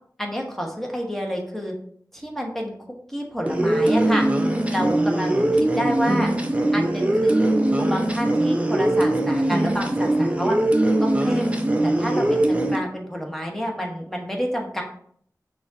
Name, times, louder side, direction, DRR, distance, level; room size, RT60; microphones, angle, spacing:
voice 1, 0.2-1.7 2.1-2.7 3.1-4.3 4.7-6.3 6.7-10.6 11.0-11.5 11.8-14.8, equal, 5° left, 0 dB, 1.0 m, -29 dB
sound 1, 3.5-12.8, right 1 dB, 20° right, 0.5 m, -21 dB
5.9 x 2.4 x 2.7 m, 0.62 s
wide cardioid pair, 50°, 7 cm